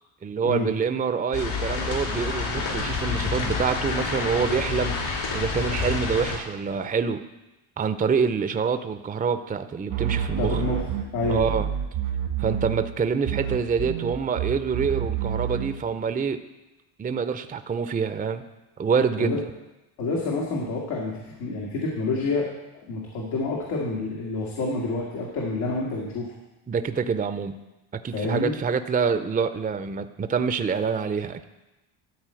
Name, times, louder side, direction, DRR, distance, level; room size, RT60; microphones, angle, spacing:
voice 1, 0.2-7.2 7.8-10.6 11.3-11.7 12.4-16.4 17.0-18.4 18.8-19.4 26.7-27.6 28.0-31.4, right 6 dB, 15° right, 10 dB, 0.6 m, -26 dB
sound 1, 1.3-6.4, left 4 dB, 70° left, 3.4 m, -28 dB
sound 2, 9.9-13.0 13.2-15.8, right 9 dB, 80° right, 1.8 m, -28 dB
voice 2, 10.4-10.9 11.1-11.5 19.2-19.4 20.0-22.5 22.9-26.3 28.1-28.5, left 2 dB, 90° left, -3 dB, 2.0 m, -28 dB
12.5 x 4.4 x 7.6 m, 1.0 s
supercardioid pair, 80°, 50 cm